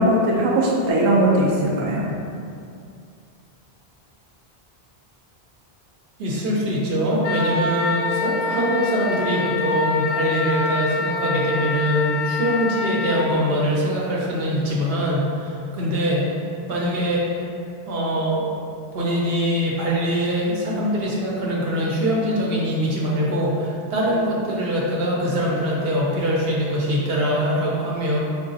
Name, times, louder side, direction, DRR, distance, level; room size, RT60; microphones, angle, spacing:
voice 1, 0.0-2.1, right 1 dB, 40° right, -4 dB, 0.4 m, -19 dB
voice 2, 6.2-16.4 16.7-17.4 17.9-18.5 18.9-28.2, equal, 75° right, -4 dB, 0.9 m, -23 dB
Wind instrument woodwind instrument, 7.2-13.3, left 3 dB, 80° left, 0.8 m, -25 dB
4.7 x 2.4 x 2.6 m, 2.4 s
omnidirectional pair, 1.0 m